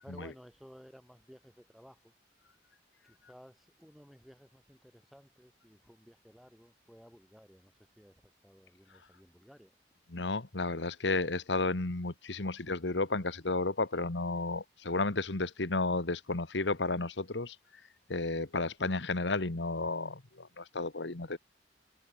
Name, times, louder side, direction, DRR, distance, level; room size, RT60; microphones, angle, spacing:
voice 1, 0.0-2.1 3.1-9.7, equal, ahead, 7.7 m, -56 dB
voice 2, 10.1-17.6 18.1-21.4, left 3 dB, 85° left, 1.6 m, -32 dB
head